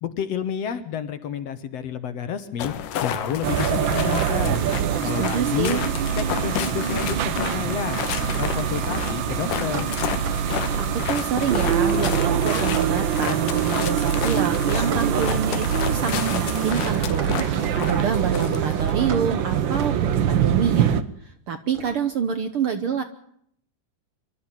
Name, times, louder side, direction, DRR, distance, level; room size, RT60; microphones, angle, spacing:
voice 1, 0.0-4.6 5.0-5.8 6.2-9.9, left 8 dB, 60° left, 11 dB, 2.1 m, -30 dB
sound 1, 2.6-18.9, left 10 dB, 90° left, 2.8 m, -32 dB
sound 2, 3.4-21.0, right 9 dB, 90° right, 1.0 m, -24 dB
voice 2, 5.0-5.8 10.4-17.5 17.8-23.0, right 7 dB, 60° right, 9 dB, 1.5 m, -27 dB
sound 3, 6.0-22.3, right 3 dB, 45° right, 2.2 m, -41 dB
25.0 x 13.0 x 9.0 m, 0.67 s
omnidirectional pair, 3.6 m